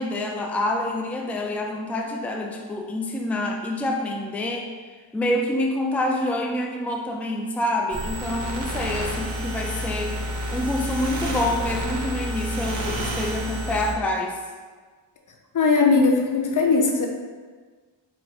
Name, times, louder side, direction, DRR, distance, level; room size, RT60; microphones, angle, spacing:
voice 1, 0.0-4.7 5.1-10.2 10.5-14.4, left 1 dB, 5° left, 1 dB, 0.4 m, -27 dB
sound 1, 7.9-13.9, equal, 75° right, 0.9 m, -29 dB
voice 2, 15.5-17.1, left 4 dB, 45° left, 3 dB, 0.7 m, -19 dB
4.1 x 2.6 x 4.3 m, 1.5 s
cardioid pair, 80°, 45 cm